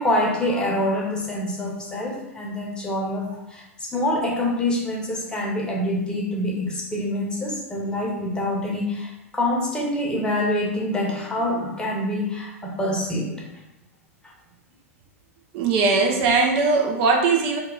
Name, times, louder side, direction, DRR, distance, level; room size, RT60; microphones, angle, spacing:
voice 1, 0.0-13.4, left 1 dB, 10° left, -2 dB, 0.8 m, -26 dB
voice 2, 15.5-17.6, right 4 dB, 50° right, 2 dB, 0.4 m, -20 dB
2.8 x 2.3 x 3.7 m, 0.90 s
hypercardioid pair, 100°, 8 cm